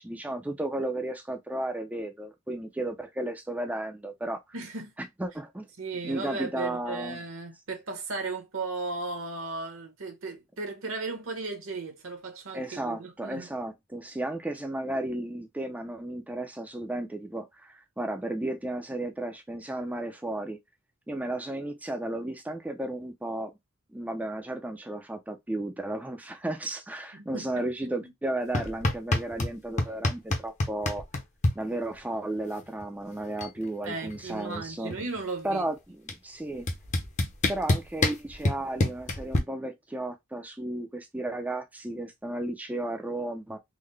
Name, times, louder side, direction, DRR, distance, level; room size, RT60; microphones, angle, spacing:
voice 1, 0.0-4.4 5.2-5.7 6.0-7.2 12.5-20.6 21.1-23.5 23.9-31.0 31.6-35.0 35.4-36.7 37.5-43.6, right 1 dB, 5° right, 0.4 m, -34 dB
voice 2, 4.5-4.9 5.8-13.5 27.1-28.0 33.8-35.7, right 3 dB, 65° right, 1.0 m, -36 dB
sound 1, 28.5-29.5 29.8-31.5 32.8-32.9 33.2-33.6 33.8-35.2 36.1-36.2 36.7-39.4, left 2 dB, 35° left, 0.7 m, -26 dB
3.7 x 2.1 x 3.2 m
head